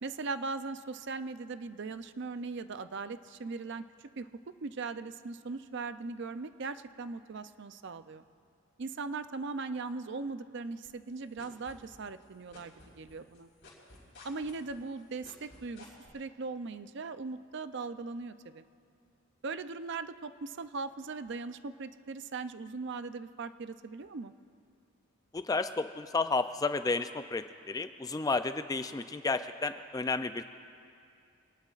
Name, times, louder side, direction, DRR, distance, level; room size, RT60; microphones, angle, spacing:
voice 1, 0.0-8.2 8.8-13.5 14.2-15.9 16.1-18.6 19.4-24.3, right 4 dB, 55° right, 11 dB, 0.5 m, -39 dB
sound 1, 10.8-12.2 12.5-16.1, left 3 dB, 50° left, 4.4 m, -53 dB
voice 2, 25.3-30.5, left 3 dB, 15° left, 10 dB, 0.3 m, -32 dB
25.5 x 19.0 x 2.4 m, 2.4 s
head